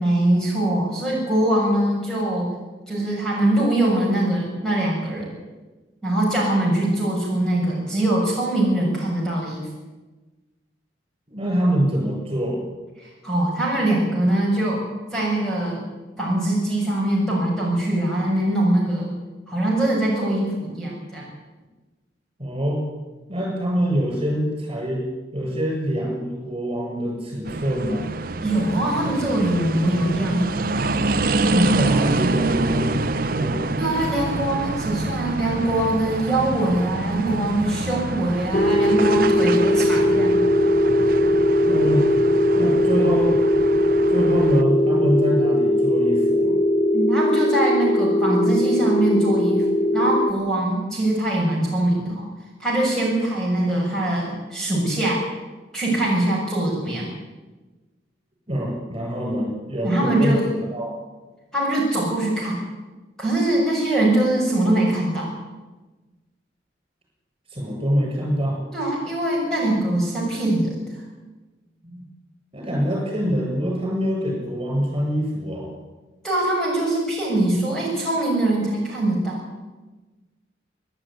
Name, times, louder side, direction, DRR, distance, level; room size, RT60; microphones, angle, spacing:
voice 1, 0.0-2.5 2.9-5.3 6.0-9.7 13.0-14.8 15.1-15.8 16.2-19.1 19.5-21.3 28.4-30.6 33.8-40.4 46.9-49.7 49.9-52.3 52.6-55.2 55.7-57.1 59.8-60.5 61.5-62.6 63.2-65.3 68.7-70.9 76.2-79.4, right 1 dB, 5° left, -4 dB, 7.1 m, -22 dB
voice 2, 11.3-12.6 22.4-22.8 23.3-25.1 25.3-28.1 31.5-33.8 41.6-42.1 42.5-43.4 44.1-46.6 58.5-60.4 60.7-61.0 67.5-68.6 71.8-72.0 72.5-75.7, equal, 30° right, -1 dB, 7.7 m, -25 dB
sound 1, 27.5-44.6, right 2 dB, 50° right, 0.9 m, -26 dB
sound 2, 38.5-50.3, left 1 dB, 40° left, 1.1 m, -19 dB
27.5 x 11.5 x 9.5 m, 1.2 s
head